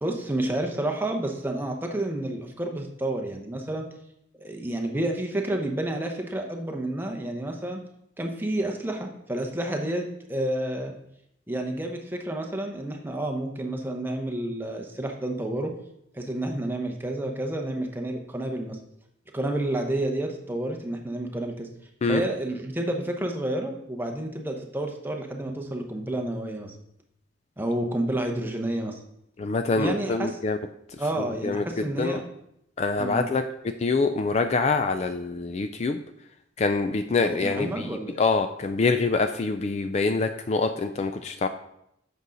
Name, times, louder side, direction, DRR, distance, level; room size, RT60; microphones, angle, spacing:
voice 1, 0.0-3.9 4.4-7.8 8.2-10.9 11.5-15.7 16.1-18.8 19.3-21.7 22.0-26.7 27.6-29.0 29.8-30.4 31.0-32.3 33.0-33.3 37.2-38.2, right 1 dB, 10° right, 2 dB, 0.8 m, -30 dB
voice 2, 29.4-30.6 31.4-31.6 32.0-32.2 32.8-33.4 33.8-36.0 36.6-37.7 38.2-41.5, left 4 dB, 35° left, 8 dB, 0.3 m, -25 dB
8.1 x 6.3 x 3.9 m, 0.78 s
head